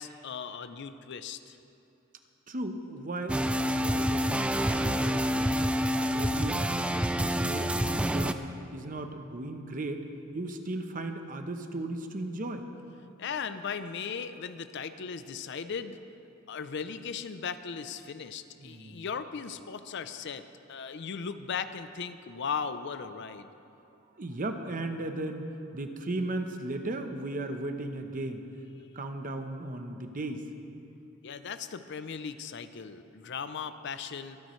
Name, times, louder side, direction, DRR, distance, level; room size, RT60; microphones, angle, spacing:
voice 1, 0.0-1.6 13.2-16.0 16.5-23.5 31.2-34.4, left 6 dB, 60° left, 11 dB, 0.5 m, -37 dB
voice 2, 2.5-5.5 5.9-8.4 8.7-10.0 10.3-12.6 18.6-19.1 24.2-28.5 28.9-30.4, right 2 dB, 40° right, 6 dB, 0.8 m, -36 dB
sound 1, 3.3-8.3, equal, 5° right, 0.3 m, -27 dB
24.0 x 10.5 x 3.1 m, 2.7 s
head